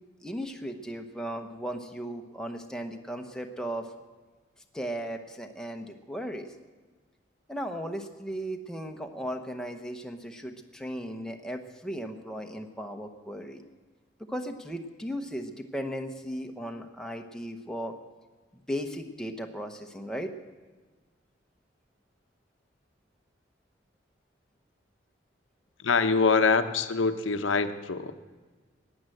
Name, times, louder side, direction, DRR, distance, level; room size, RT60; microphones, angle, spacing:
voice 1, 0.2-3.9 4.7-6.5 7.5-13.6 14.3-18.0 18.7-20.3, equal, 5° left, 3 dB, 0.8 m, -36 dB
voice 2, 25.8-28.1, left 4 dB, 80° left, 9 dB, 0.8 m, -24 dB
15.5 x 9.8 x 7.8 m, 1.3 s
head